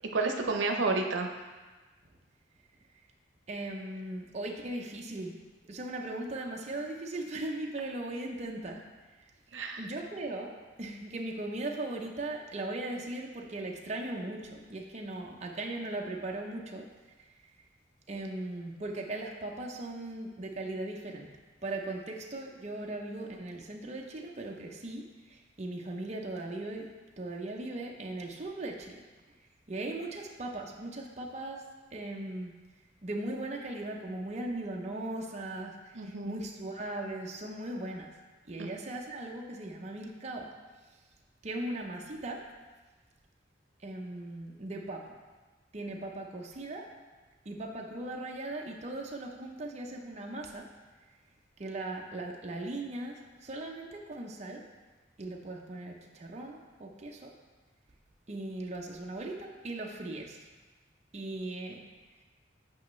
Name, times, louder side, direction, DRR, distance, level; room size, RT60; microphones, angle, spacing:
voice 1, 0.1-1.3 9.5-9.8 35.9-36.4 38.6-38.7, right 3 dB, 90° right, 4 dB, 0.7 m, -30 dB
voice 2, 3.5-5.3 5.6-8.8 9.8-16.9 18.1-21.3 21.6-26.9 27.2-29.0 29.7-31.6 31.9-32.5 33.0-38.1 38.5-40.5 41.4-42.4 43.8-45.0 45.7-46.9 47.5-50.7 51.6-54.6 55.2-57.3 58.3-60.4 61.1-61.8, right 2 dB, 40° right, 0 dB, 0.6 m, -38 dB
8.3 x 5.3 x 3.1 m, 1.3 s
head